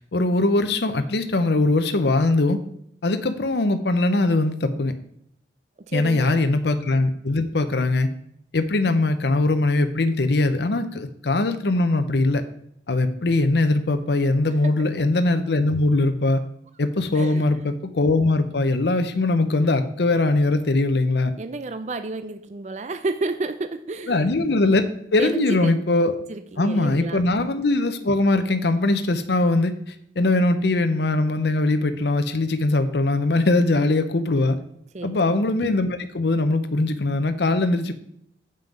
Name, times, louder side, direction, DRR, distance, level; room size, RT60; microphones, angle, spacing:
voice 1, 0.0-2.6 3.0-4.9 5.9-8.1 8.5-12.4 12.9-16.4 16.8-21.3 24.1-24.9 25.1-26.1 26.6-29.7 30.2-34.6 35.0-37.9, left 2 dB, 70° left, 8 dB, 0.7 m, -21 dB
voice 2, 5.9-6.4 14.6-15.1 17.1-17.5 21.4-24.3 25.2-25.7 26.3-27.2 34.9-35.2, right 3 dB, 40° right, 10 dB, 0.4 m, -31 dB
7.6 x 5.6 x 5.2 m, 0.71 s
head